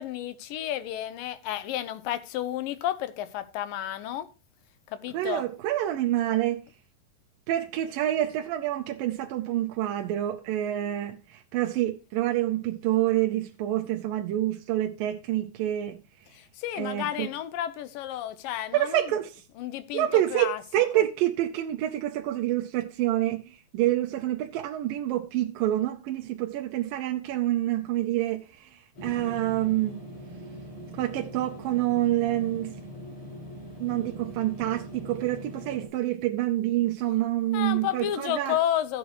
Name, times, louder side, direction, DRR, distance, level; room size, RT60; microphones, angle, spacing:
voice 1, 0.0-4.3 4.9-5.4 16.3-19.1 19.6-20.6 20.9-21.0 37.5-39.0, left 12 dB, 75° left, 2.5 m, -31 dB
voice 2, 5.1-6.6 7.5-16.0 16.8-17.3 18.7-19.4 19.9-30.0 30.9-32.8 33.8-38.6, right 14 dB, 80° right, 2.5 m, -27 dB
sound 1, 28.9-35.9, equal, 55° left, 7.1 m, -42 dB
14.5 x 8.3 x 3.0 m
omnidirectional pair, 4.1 m